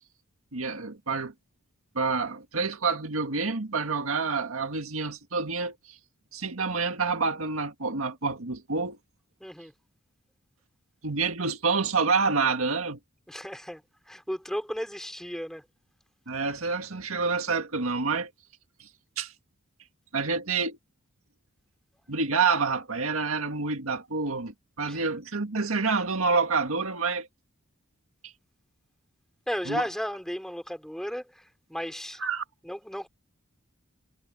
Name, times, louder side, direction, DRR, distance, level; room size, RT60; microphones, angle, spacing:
voice 1, 0.5-1.3 2.0-5.8 6.3-9.0 11.0-13.0 16.3-18.3 18.8-18.9 19.2-19.3 20.1-20.8 22.1-27.3 28.2-28.3 29.7-29.8 32.2-32.4, right 4 dB, 75° right, 1.9 m, -28 dB
voice 2, 9.4-9.7 13.3-15.6 24.8-25.0 29.5-32.2 32.6-33.1, equal, ahead, 4.2 m, -34 dB
head